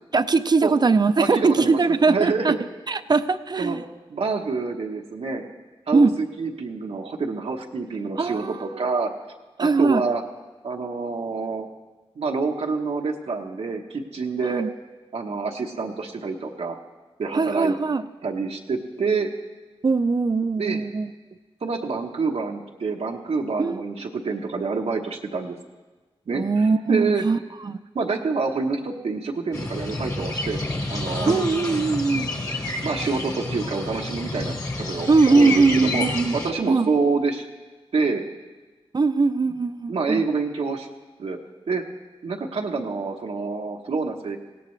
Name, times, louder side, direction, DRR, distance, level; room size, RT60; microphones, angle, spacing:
voice 1, 0.1-2.5 2.9-3.8 5.9-6.1 8.2-8.6 9.6-10.0 14.5-14.7 17.3-18.0 19.8-21.1 23.6-23.8 26.3-27.4 27.6-27.8 31.3-32.3 35.1-36.3 36.7-36.9 38.9-40.2, right 4 dB, 45° right, 12 dB, 0.5 m, -20 dB
voice 2, 1.2-2.6 3.6-3.8 4.1-5.4 5.9-9.1 9.6-10.2 10.6-11.7 12.2-14.6 15.1-16.8 17.2-17.8 18.2-19.3 20.6-20.8 21.6-25.6 26.3-27.2 27.9-30.6 30.9-31.4 32.8-36.1 36.3-37.4 37.9-38.2 39.9-40.9 41.2-41.4 41.7-41.8 42.2-44.4, right 4 dB, 90° right, 0 dB, 1.0 m, -27 dB
sound 1, 29.5-36.5, left 2 dB, 35° left, 1.4 m, -29 dB
19.5 x 16.5 x 3.2 m, 1.3 s
wide cardioid pair, 105°, 10 cm